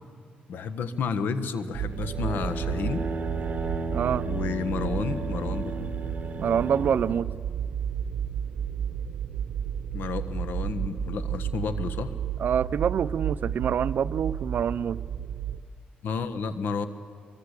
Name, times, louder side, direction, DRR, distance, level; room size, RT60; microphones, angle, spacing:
voice 1, 0.5-3.0 4.2-5.9 9.9-12.1 16.0-16.9, left 5 dB, 80° left, 11 dB, 1.5 m, -31 dB
sound 1, 1.7-15.6, right 8 dB, 85° right, 0.9 m, -32 dB
sound 2, 1.9-7.2, right 2 dB, 45° right, 2.1 m, -34 dB
voice 2, 3.9-4.2 6.4-7.3 12.4-15.0, right 8 dB, 65° right, 17 dB, 0.6 m, -26 dB
24.0 x 23.5 x 8.3 m, 2.1 s
cardioid pair, 105°, 3 cm